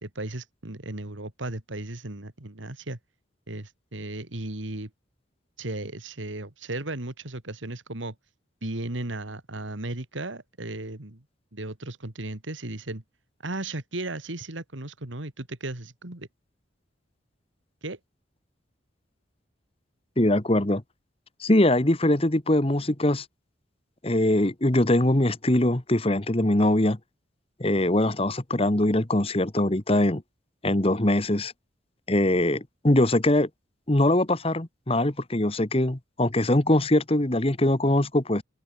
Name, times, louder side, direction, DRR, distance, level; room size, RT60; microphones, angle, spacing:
voice 1, 0.0-3.0 3.5-4.9 5.6-8.1 8.6-11.2 11.5-13.0 13.4-16.3 17.8-18.0, right 2 dB, 80° right, 2.5 m, -35 dB
voice 2, 20.2-20.8 21.4-23.2 24.0-27.0 27.6-30.2 30.6-31.5 32.1-33.5 33.9-38.4, left 1 dB, 30° left, 1.5 m, -22 dB
open air
head